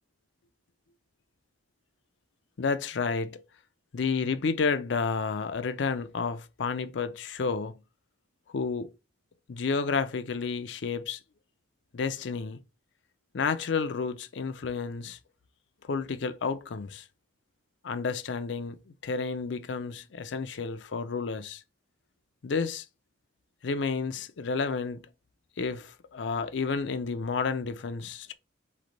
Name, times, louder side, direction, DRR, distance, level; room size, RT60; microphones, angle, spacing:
voice 1, 2.6-3.4 3.9-7.7 8.5-8.9 9.5-11.2 11.9-12.6 13.3-15.2 15.9-17.0 17.8-21.6 22.4-22.8 23.6-25.0 25.6-28.3, left 5 dB, 70° left, 0.5 m, -31 dB
4.2 x 3.2 x 3.9 m
head